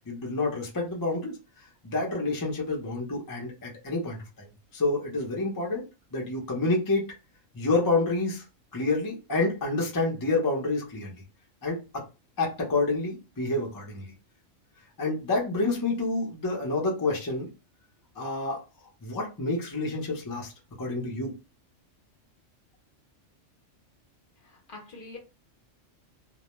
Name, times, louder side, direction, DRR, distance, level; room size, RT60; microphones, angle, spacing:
voice 1, 0.1-1.4 1.8-5.8 6.1-7.1 7.5-8.4 8.7-11.2 11.6-12.0 12.4-14.1 15.0-17.5 18.2-18.6 19.0-20.5 20.8-21.3, left 2 dB, 25° left, 0.4 m, -28 dB
voice 2, 24.4-25.2, left 3 dB, 50° left, 0.8 m, -45 dB
2.2 x 2.1 x 2.9 m
omnidirectional pair, 1.3 m